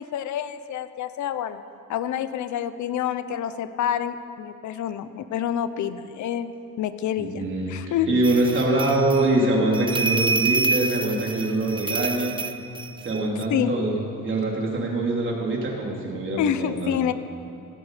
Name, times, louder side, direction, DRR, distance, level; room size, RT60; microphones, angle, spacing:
voice 1, 0.0-1.6 1.9-8.1 13.5-13.7 16.4-17.1, left 10 dB, 60° left, 12 dB, 0.8 m, -28 dB
voice 2, 7.2-12.3 13.0-17.0, right 2 dB, 35° right, -2 dB, 3.5 m, -24 dB
sound 1, 8.2-13.4, right 4 dB, 15° right, 0.4 m, -28 dB
16.0 x 15.5 x 5.0 m, 2.7 s
cardioid pair, 120°, 32 cm